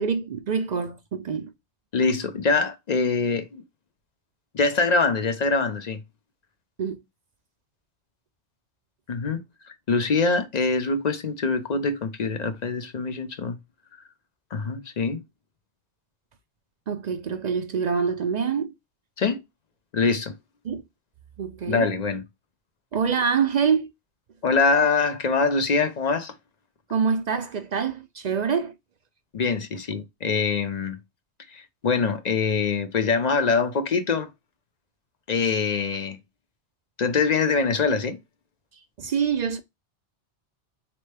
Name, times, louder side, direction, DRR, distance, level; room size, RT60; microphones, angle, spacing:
voice 1, 0.0-1.5 6.8-7.0 16.9-18.7 20.6-20.8 21.4-21.9 22.9-23.9 26.9-28.7 39.0-39.6, right 6 dB, 55° right, 0.5 m, -25 dB
voice 2, 1.9-3.6 4.5-6.0 9.1-9.4 9.9-13.6 14.5-15.2 19.2-19.4 19.9-20.3 21.7-22.2 24.4-26.3 29.3-31.0 31.5-34.3 35.3-36.2 37.0-38.2, left 4 dB, 45° left, 0.7 m, -24 dB
4.2 x 3.0 x 3.2 m
omnidirectional pair, 1.1 m